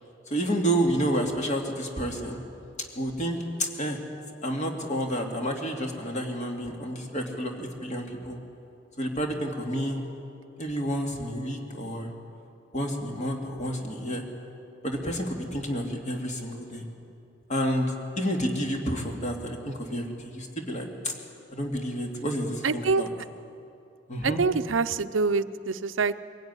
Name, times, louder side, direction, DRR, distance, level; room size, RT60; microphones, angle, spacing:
voice 1, 0.3-2.4 2.9-4.0 4.4-8.4 9.0-10.0 10.6-12.1 12.7-14.2 14.8-16.8 17.5-21.1 21.5-23.1 24.1-24.4, equal, 40° left, 2 dB, 2.6 m, -30 dB
voice 2, 22.6-23.0 24.2-26.2, right 4 dB, 85° right, 12 dB, 0.7 m, -25 dB
23.0 x 16.0 x 9.7 m, 2.7 s
head